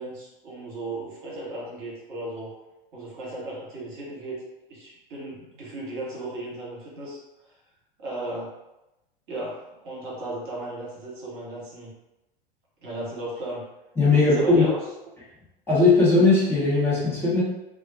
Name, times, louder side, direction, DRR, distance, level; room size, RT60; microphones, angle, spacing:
voice 1, 0.0-2.5 2.9-4.4 4.7-7.2 8.0-8.5 9.3-11.9 12.8-13.6 14.1-14.8, right 1 dB, 55° right, -5 dB, 1.0 m, -35 dB
voice 2, 14.0-14.6 15.7-17.4, left 3 dB, 10° left, -10 dB, 1.0 m, -19 dB
2.3 x 2.2 x 2.6 m, 0.95 s
figure-of-eight pair, 85°, 29 cm